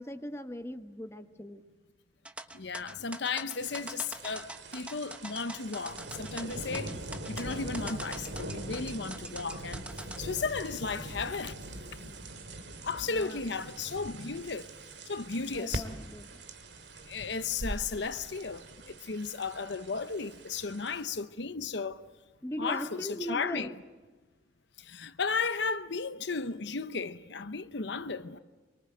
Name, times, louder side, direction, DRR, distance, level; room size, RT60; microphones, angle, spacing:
voice 1, 0.0-1.6 6.9-7.0 13.0-13.4 15.5-16.4 16.8-17.4 22.4-23.7, equal, 15° left, 1.1 m, -40 dB
sound 1, 2.2-10.2, right 1 dB, 5° right, 1.1 m, -43 dB
voice 2, 2.5-7.0 7.3-9.8 10.2-11.6 12.8-14.7 15.1-15.8 17.1-22.0 22.6-23.7 24.8-28.4, left 4 dB, 65° left, 0.8 m, -34 dB
sound 2, 3.6-21.0, right 1 dB, 65° right, 2.3 m, -42 dB
26.0 x 23.5 x 7.8 m
head